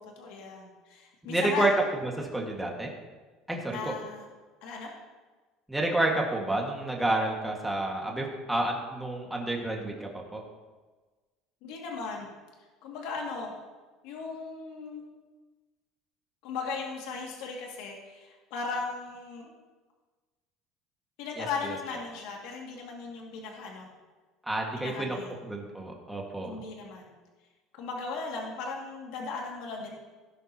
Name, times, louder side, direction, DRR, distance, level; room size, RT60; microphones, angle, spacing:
voice 1, 0.0-1.7 3.7-4.3 4.6-4.9 11.6-12.3 12.8-13.5 14.0-15.0 16.4-19.5 21.2-23.9 24.8-25.4 26.4-27.1 27.7-30.0, left 4 dB, 75° left, -1 dB, 2.3 m, -37 dB
voice 2, 1.3-1.7 2.0-2.9 3.5-3.9 5.7-10.4 21.4-21.7 24.5-25.2 25.4-26.5, right 2 dB, 5° right, -1 dB, 1.8 m, -30 dB
17.5 x 11.0 x 3.0 m, 1.3 s
cardioid pair, 150°, 0 cm